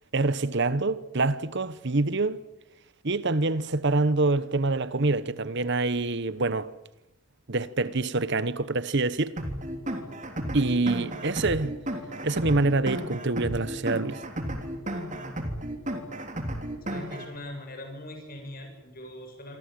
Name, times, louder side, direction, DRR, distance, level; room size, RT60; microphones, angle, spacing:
voice 1, 0.1-2.4 3.0-6.7 7.5-9.4 10.5-11.7 12.2-14.2, right 3 dB, 55° right, 1.1 m, -26 dB
sound 1, 9.4-17.4, right 1 dB, 35° right, 3.4 m, -33 dB
voice 2, 16.8-19.6, left 1 dB, 40° left, 7.7 m, -41 dB
27.0 x 24.5 x 7.8 m
head